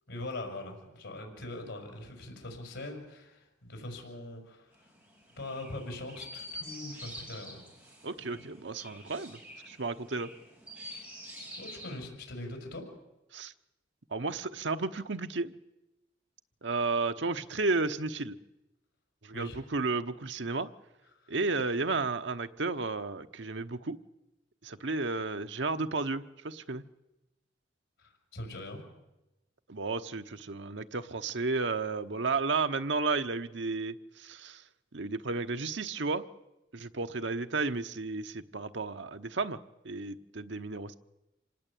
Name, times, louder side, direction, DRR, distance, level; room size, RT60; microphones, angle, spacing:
voice 1, 0.1-4.9 5.4-7.7 8.4-8.5 11.6-12.8 19.3-19.6 21.2-21.4 28.0-28.8, left 2 dB, 85° left, 3 dB, 5.9 m, -42 dB
Chirp tweet, 4.7-12.0, equal, 5° right, 6.2 m, -47 dB
voice 2, 8.0-9.4 9.7-10.3 13.3-13.5 14.1-15.6 16.6-18.4 19.2-20.7 21.3-24.0 24.6-26.8 29.7-34.6 34.9-36.3 36.7-39.6 39.8-40.9, right 3 dB, 70° right, 8 dB, 1.0 m, -33 dB
26.5 x 18.5 x 8.6 m, 0.95 s
head